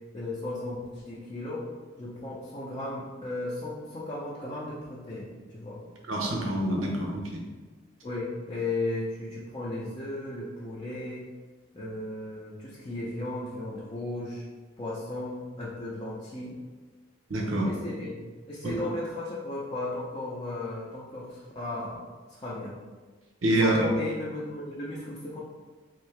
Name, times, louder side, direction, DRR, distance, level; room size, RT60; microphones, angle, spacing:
voice 1, 0.1-1.7 2.0-5.8 8.0-11.3 11.7-14.5 14.8-16.6 17.6-18.2 18.5-22.0 22.3-22.8 23.6-25.4, left 2 dB, 25° left, -6 dB, 0.5 m, -35 dB
voice 2, 6.1-7.4 17.3-17.7 18.6-18.7 23.4-23.9, right 1 dB, 90° right, 0 dB, 0.7 m, -26 dB
3.7 x 2.7 x 3.2 m, 1.3 s
head